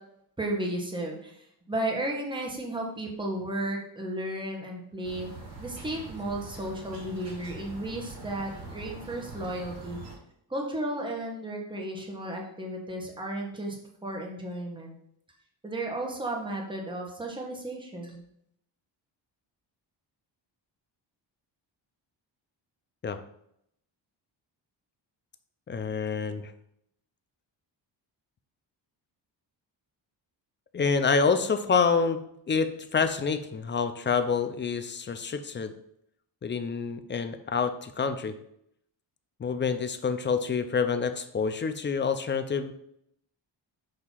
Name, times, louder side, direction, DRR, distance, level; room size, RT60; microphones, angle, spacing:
voice 1, 0.4-5.3 5.6-10.0 10.5-13.8 14.0-15.0 15.6-18.2, right 1 dB, 10° right, 0 dB, 1.1 m, -34 dB
sound 1, 5.0-10.2, right 3 dB, 50° right, 2.5 m, -43 dB
voice 2, 25.7-26.4 30.7-32.2 32.5-35.7 36.4-38.3 39.4-42.7, left 5 dB, 25° left, 9 dB, 0.4 m, -27 dB
6.4 x 2.8 x 5.5 m, 0.74 s
cardioid pair, 130°, 45 cm